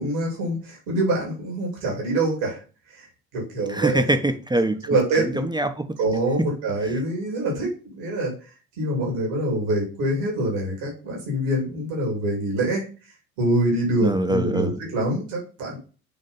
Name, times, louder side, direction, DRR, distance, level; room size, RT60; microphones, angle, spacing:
voice 1, 0.0-2.6 2.9-3.1 3.3-4.0 4.8-5.4 6.0-8.3 8.8-12.9 13.4-15.8, right 1 dB, 80° right, 2.8 m, -25 dB
voice 2, 3.7-4.8 5.1-5.8 14.0-14.8, right 1 dB, 10° right, 0.9 m, -23 dB
6.8 x 2.9 x 5.3 m
hypercardioid pair, 65°, 40 cm